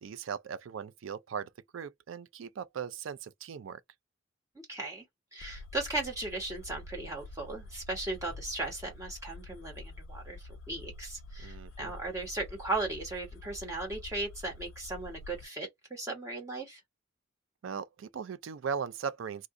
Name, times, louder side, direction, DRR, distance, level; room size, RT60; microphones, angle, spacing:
voice 1, 0.0-3.8 11.4-11.9 17.6-19.5, right 7 dB, 75° right, 0.4 m, -38 dB
voice 2, 4.7-5.0 5.3-16.8, right 2 dB, 15° right, 1.2 m, -37 dB
sound 1, 5.4-15.5, left 3 dB, 70° left, 0.4 m, -47 dB
2.5 x 2.4 x 3.6 m
head